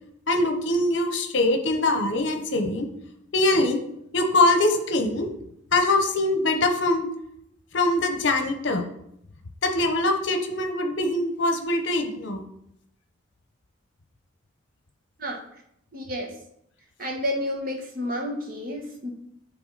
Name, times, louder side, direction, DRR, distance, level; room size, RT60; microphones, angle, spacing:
voice 1, 0.3-2.9 3.3-3.8 4.1-5.3 5.7-7.1 7.7-8.8 9.6-12.4, left 2 dB, 65° left, 6 dB, 0.8 m, -23 dB
voice 2, 15.9-16.3 17.0-19.1, equal, 45° right, 2 dB, 1.2 m, -30 dB
8.5 x 3.4 x 4.0 m, 0.75 s
head